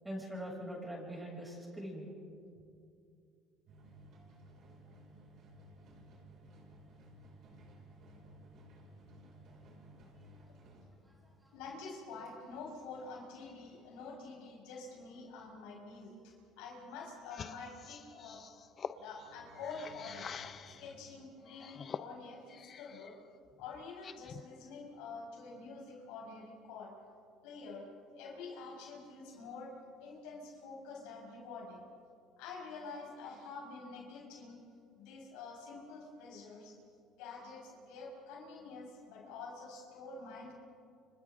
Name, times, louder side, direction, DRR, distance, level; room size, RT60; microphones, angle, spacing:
voice 1, 0.0-2.1 11.1-11.2 11.4-11.5, equal, 10° right, -2 dB, 7.5 m, -43 dB
sound 1, 3.7-11.9 12.3-12.4 13.0-13.1 18.8-20.9, right 1 dB, 60° right, 6.1 m, -57 dB
voice 2, 11.5-18.4 19.0-20.3 20.8-23.2 23.6-26.9 27.4-29.7 30.0-31.8 32.4-34.6 34.9-36.8 37.2-40.5, left 4 dB, 85° left, -1 dB, 5.7 m, -47 dB
sound 2, 17.2-20.9 21.4-23.1 23.5-24.5, left 7 dB, 40° left, 0.8 m, -47 dB
30.0 x 26.0 x 3.9 m, 2.5 s
supercardioid pair, 100°, 0 cm